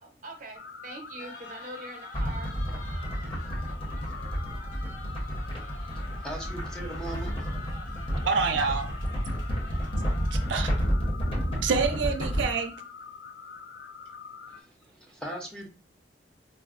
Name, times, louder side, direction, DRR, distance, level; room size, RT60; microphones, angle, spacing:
voice 1, 0.0-4.6, right 1 dB, 45° right, 4 dB, 0.7 m, -45 dB
sound 1, 0.5-14.6, left 5 dB, 70° left, 0.3 m, -45 dB
sound 2, 1.2-10.8, left 1 dB, 45° left, 1.1 m, -50 dB
sound 3, 2.1-12.4, equal, 30° left, 0.8 m, -31 dB
voice 2, 5.9-7.3 14.5-15.7, right 1 dB, 5° left, 0 dB, 0.5 m, -40 dB
voice 3, 8.2-8.9 10.3-10.7 11.6-12.7, right 5 dB, 80° right, 7 dB, 0.4 m, -27 dB
4.0 x 2.0 x 2.4 m, 0.35 s
head